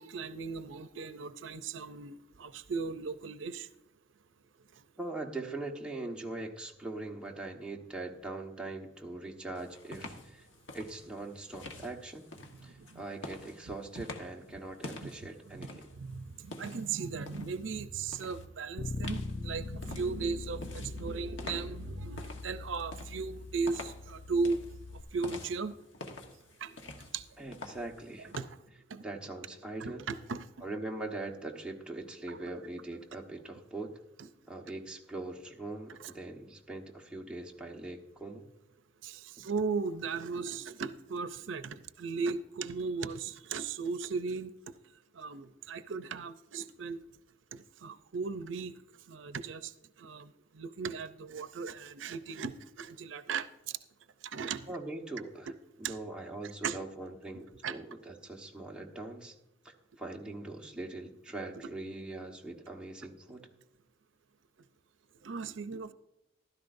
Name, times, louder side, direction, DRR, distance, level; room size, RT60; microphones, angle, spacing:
voice 1, 0.0-2.1 2.4-3.7 12.9-13.0 14.0-14.1 15.0-15.1 15.6-15.7 16.0-24.6 25.1-25.8 26.6-26.7 27.1-27.2 28.4-28.5 28.9-29.0 29.8-30.4 32.3-32.4 34.2-34.3 39.0-44.5 45.2-47.0 47.5-48.7 49.1-49.7 50.0-50.3 50.6-53.5 54.3-54.8 55.8-55.9 56.6-56.8 57.6-57.8 65.2-65.9, right 4 dB, 85° right, 12 dB, 0.6 m, -36 dB
voice 2, 5.0-10.5 10.7-12.3 12.6-15.9 27.4-28.3 29.0-30.0 30.6-33.9 34.5-38.5 54.7-55.5 55.8-59.3 59.6-63.5, right 2 dB, 5° right, -1 dB, 1.3 m, -41 dB
sound 1, 9.5-17.7 18.1-18.4 19.0-28.4, left 2 dB, 90° left, 1.3 m, -48 dB
Bass guitar, 18.8-25.0, left 3 dB, 40° left, 0.6 m, -41 dB
14.5 x 12.5 x 2.6 m, 0.87 s
head